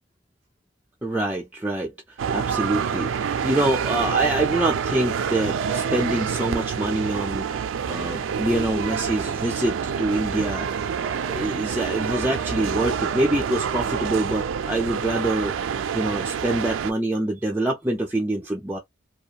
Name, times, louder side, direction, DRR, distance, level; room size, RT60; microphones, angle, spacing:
voice 1, 1.0-7.5 7.9-10.7 11.2-15.6 15.9-18.8, right 1 dB, 10° right, 0.3 m, -25 dB
sound 1, 2.2-16.9, right 7 dB, 90° right, 0.3 m, -27 dB
2.4 x 2.2 x 2.8 m
head